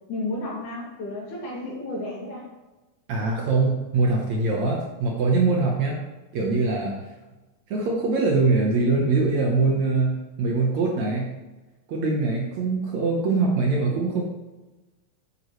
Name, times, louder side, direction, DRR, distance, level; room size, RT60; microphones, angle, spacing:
voice 1, 0.1-2.5, left 2 dB, 60° left, -5 dB, 4.0 m, -32 dB
voice 2, 3.1-6.0 6.3-7.1 7.7-11.3 11.9-14.2, right 3 dB, 65° right, -1 dB, 2.0 m, -23 dB
9.8 x 9.2 x 3.2 m, 1.1 s
omnidirectional pair, 4.1 m